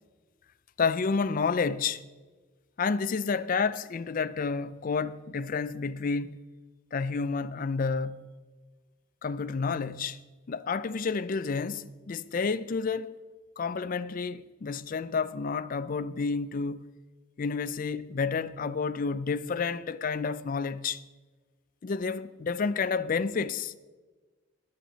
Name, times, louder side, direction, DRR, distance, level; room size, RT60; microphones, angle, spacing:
voice 1, 0.8-2.0 2.8-6.4 6.9-8.2 9.2-10.2 10.5-13.2 13.6-16.9 17.4-21.0 21.8-23.7, left 5 dB, 40° left, 0.4 m, -30 dB
20.5 x 7.8 x 4.0 m
head